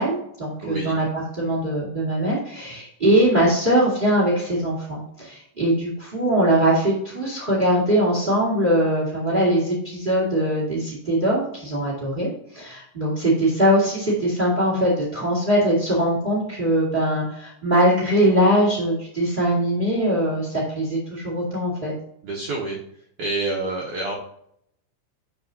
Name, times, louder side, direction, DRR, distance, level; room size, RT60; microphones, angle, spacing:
voice 1, 0.0-21.9, right 1 dB, 40° right, -5 dB, 0.7 m, -21 dB
voice 2, 0.6-0.9 22.2-22.8 23.2-24.1, right 2 dB, 90° right, -3 dB, 1.7 m, -27 dB
12.0 x 4.8 x 2.8 m, 0.72 s
omnidirectional pair, 5.4 m